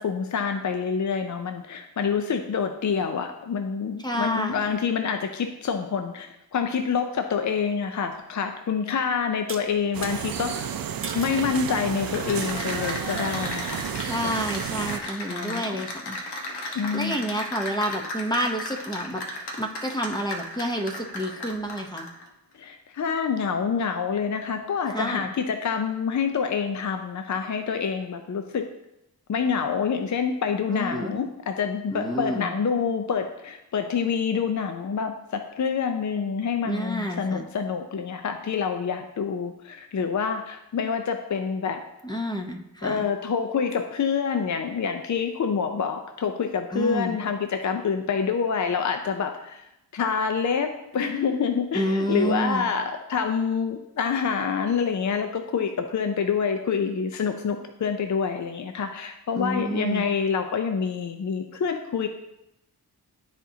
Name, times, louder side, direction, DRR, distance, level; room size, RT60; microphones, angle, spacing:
voice 1, 0.0-10.8 11.1-13.9 14.2-14.3 15.3-15.8 16.7-17.3 22.5-28.6 29.3-41.8 42.8-49.7 49.9-62.1, left 6 dB, 50° left, 6 dB, 0.6 m, -27 dB
voice 2, 4.0-4.7 14.0-16.2 16.7-19.2 19.6-22.1 24.9-25.3 30.7-31.2 31.9-32.5 36.6-37.5 42.0-43.1 46.7-47.2 51.7-52.7 59.3-60.1, equal, 10° left, 3 dB, 0.8 m, -29 dB
sound 1, 9.5-10.2 11.0-11.4 12.1-12.5, right 3 dB, 30° right, 1.0 m, -38 dB
sound 2, 9.9-15.0, right 8 dB, 60° right, 0.5 m, -32 dB
Cheering / Applause, 11.9-22.2, left 1 dB, 80° left, 1.3 m, -35 dB
12.5 x 4.3 x 2.8 m, 0.87 s
cardioid pair, 80°, 39 cm